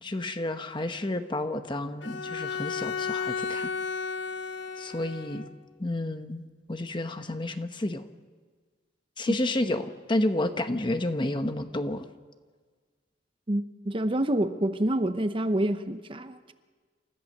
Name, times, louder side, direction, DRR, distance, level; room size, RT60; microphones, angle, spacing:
voice 1, 0.0-3.7 4.8-5.5 5.8-6.4 6.7-8.1 9.2-12.1, left 1 dB, 25° left, 8 dB, 1.0 m, -30 dB
Bowed string instrument, 2.0-5.5, left 5 dB, 80° left, 1.4 m, -33 dB
voice 2, 13.5-16.5, right 1 dB, 30° right, 10 dB, 0.8 m, -27 dB
28.5 x 14.0 x 6.6 m, 1.5 s
head